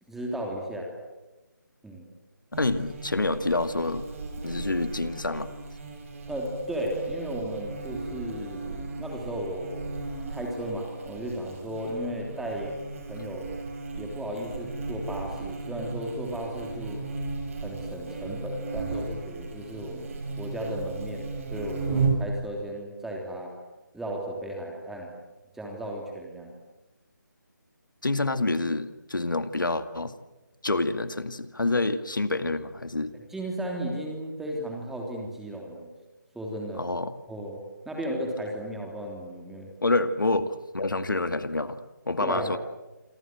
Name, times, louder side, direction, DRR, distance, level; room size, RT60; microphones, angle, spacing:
voice 1, 0.1-0.9 1.8-2.1 6.3-10.0 10.3-12.7 13.1-13.5 13.9-17.1 17.6-23.5 23.9-25.1 25.5-26.5 33.3-35.9 36.3-36.9 37.3-37.6 37.8-39.7 42.2-42.5, right 1 dB, 5° right, 0 dB, 3.2 m, -35 dB
voice 2, 2.5-4.0 4.4-5.5 28.0-30.1 30.6-33.1 36.7-37.1 39.8-42.6, left 2 dB, 80° left, 11 dB, 2.0 m, -27 dB
Buzz, 2.5-22.3, right 3 dB, 40° right, 6.0 m, -35 dB
27.0 x 25.5 x 7.8 m, 1.1 s
figure-of-eight pair, 155°, 11 cm